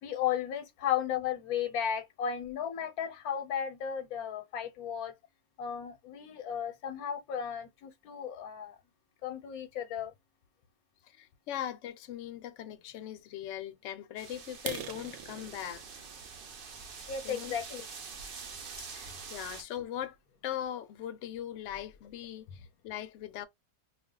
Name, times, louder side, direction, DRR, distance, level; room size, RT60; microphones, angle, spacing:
voice 1, 0.0-5.1 5.6-8.8 9.2-10.1 17.1-17.9, left 8 dB, 85° left, 1.1 m, -34 dB
voice 2, 11.2-15.8 17.2-17.6 18.8-20.2 20.4-23.5, left 11 dB, 65° left, 0.8 m, -40 dB
sound 1, 14.2-19.6, right 5 dB, 55° right, 0.6 m, -46 dB
sound 2, 14.5-18.3 18.8-19.0 19.5-19.6 20.0-20.2 20.5-20.6 21.0-21.1 21.4-21.9, right 8 dB, 80° right, 1.1 m, -45 dB
2.3 x 2.3 x 3.7 m
omnidirectional pair, 1.5 m